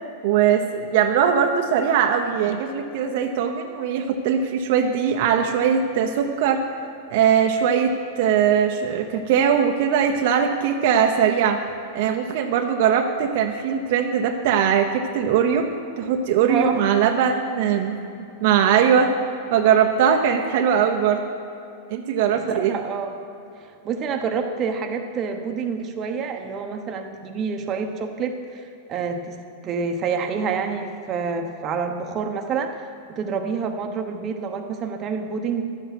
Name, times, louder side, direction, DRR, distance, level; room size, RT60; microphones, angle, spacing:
voice 1, 0.2-6.6 7.1-11.6 11.9-15.7 16.0-18.0 18.4-19.1 19.5-21.2 21.9-22.8, right 8 dB, 60° right, 4 dB, 0.8 m, -20 dB
voice 2, 22.3-23.1 23.6-28.6 28.9-29.4 29.6-32.8 33.1-35.6, right 5 dB, 30° right, 4 dB, 1.0 m, -27 dB
11.5 x 8.0 x 6.0 m, 2.7 s
hypercardioid pair, 130°, 0 cm